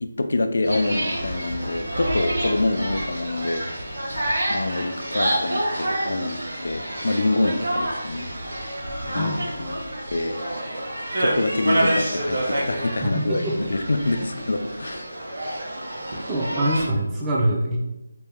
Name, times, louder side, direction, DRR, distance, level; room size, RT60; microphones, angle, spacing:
voice 1, 0.0-3.7 4.5-8.3 9.1-9.8 10.1-10.4 11.2-15.2 15.8-16.0, left 2 dB, 65° left, 7 dB, 0.4 m, -26 dB
sound 1, 0.6-16.9, right 1 dB, 60° right, 1.3 m, -28 dB
voice 2, 9.1-9.6 13.0-13.7 16.3-17.8, right 1 dB, 10° right, -3 dB, 0.4 m, -24 dB
4.3 x 2.2 x 3.5 m, 0.96 s
figure-of-eight pair, 175°, 0 cm